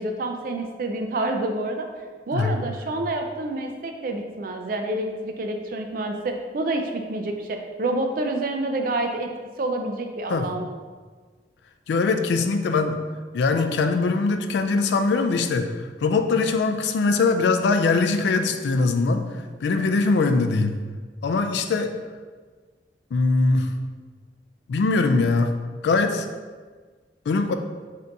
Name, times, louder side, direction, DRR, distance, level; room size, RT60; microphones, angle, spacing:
voice 1, 0.0-1.9 2.3-9.3 9.6-10.7, right 2 dB, 50° right, 4 dB, 0.4 m, -28 dB
voice 2, 11.9-13.0 13.3-15.7 16.0-19.3 19.6-20.8 21.2-21.9 23.1-23.7 24.7-25.5 25.8-26.3 27.3-27.5, left 3 dB, 75° left, 7 dB, 0.3 m, -21 dB
3.4 x 2.7 x 3.8 m, 1.5 s
head